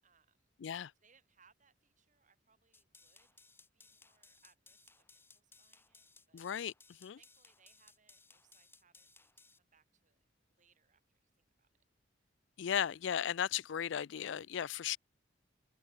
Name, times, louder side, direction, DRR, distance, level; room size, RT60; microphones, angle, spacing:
voice 1, 0.0-3.3 3.6-6.5 7.2-10.2 10.5-11.7, right 6 dB, 40° right, 7.7 m, -72 dB
sound 1, 2.7-9.6, left 3 dB, 10° left, 3.4 m, -63 dB
voice 2, 6.3-6.7 7.0-7.2 12.6-15.0, left 9 dB, 65° left, 0.4 m, -36 dB
head